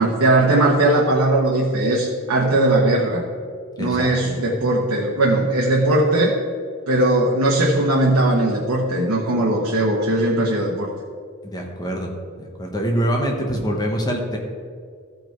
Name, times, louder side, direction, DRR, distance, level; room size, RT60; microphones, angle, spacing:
voice 1, 0.0-3.2 3.8-6.3 6.9-10.9, right 1 dB, 85° right, -2 dB, 1.1 m, -19 dB
voice 2, 3.8-4.3 11.4-12.1 12.4-14.4, equal, 20° left, 1 dB, 1.1 m, -25 dB
14.0 x 4.9 x 4.6 m, 2.1 s
head